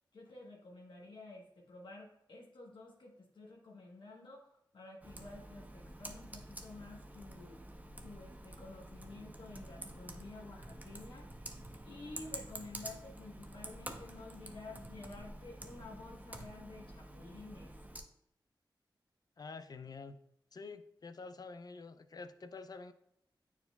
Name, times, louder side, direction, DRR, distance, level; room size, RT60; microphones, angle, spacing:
voice 1, 0.1-7.6 8.0-11.3 11.8-17.7, left 3 dB, 70° left, -2 dB, 1.1 m, -51 dB
Computer keyboard, 5.0-18.0, right 1 dB, 20° right, 0.6 m, -49 dB
voice 2, 19.4-20.2 20.5-22.9, left 4 dB, 50° left, 12 dB, 0.4 m, -48 dB
9.1 x 4.6 x 2.2 m, 0.79 s
wide cardioid pair, 80°, 8 cm